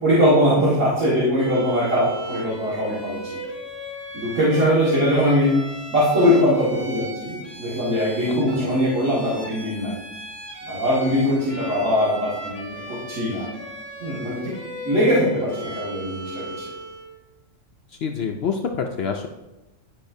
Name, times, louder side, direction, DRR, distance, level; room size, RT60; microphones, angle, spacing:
voice 1, 0.0-3.2 4.1-5.5 5.9-9.9 10.6-13.4 14.0-14.5 14.8-16.4, equal, 70° right, -9 dB, 2.2 m, -21 dB
Bowed string instrument, 1.4-17.2, right 1 dB, 10° left, 1.4 m, -37 dB
voice 2, 18.0-19.3, left 6 dB, 65° left, 3 dB, 0.7 m, -26 dB
10.5 x 5.4 x 2.7 m, 1.0 s
omnidirectional pair, 1.4 m